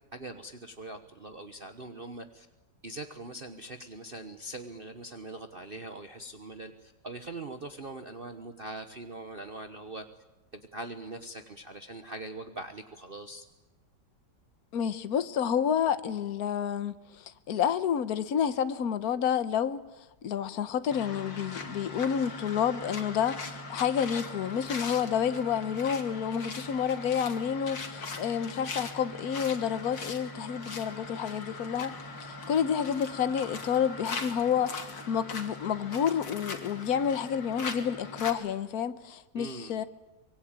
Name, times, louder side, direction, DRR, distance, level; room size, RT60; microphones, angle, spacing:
voice 1, 0.1-2.5 2.8-10.0 10.5-13.4 39.3-39.8, right 2 dB, 35° right, 1.2 m, -42 dB
voice 2, 14.7-19.8 20.2-31.9 32.2-39.8, left 8 dB, 60° left, 1.4 m, -29 dB
sound 1, 20.9-38.3, left 3 dB, 90° left, 3.0 m, -40 dB
24.5 x 22.5 x 8.9 m
omnidirectional pair, 1.9 m